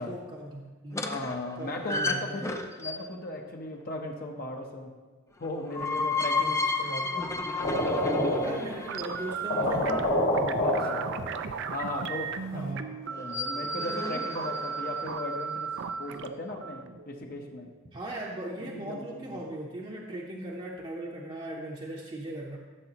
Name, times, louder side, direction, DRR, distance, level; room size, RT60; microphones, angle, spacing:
voice 1, 0.0-1.1 1.6-2.5 6.4-6.6 6.8-7.1 8.4-10.2 12.5-12.9 17.9-22.6, right 1 dB, 25° right, -3 dB, 0.8 m, -38 dB
sound 1, 0.9-3.2 5.4-9.5 13.1-15.3, left 3 dB, 15° left, 0.5 m, -33 dB
voice 2, 1.0-4.9 5.4-6.6 6.9-7.4 7.8-8.6 10.6-11.1 11.7-12.7 13.0-15.7 16.0-17.7 18.6-19.4, left 2 dB, 50° left, 1 dB, 0.9 m, -37 dB
sound 2, 7.6-8.9 9.2-9.3 9.5-11.7, left 1 dB, 65° left, 2.2 m, -28 dB
sound 3, 8.9-17.8, right 6 dB, 60° right, 0.5 m, -36 dB
14.0 x 6.9 x 3.0 m, 1.4 s
head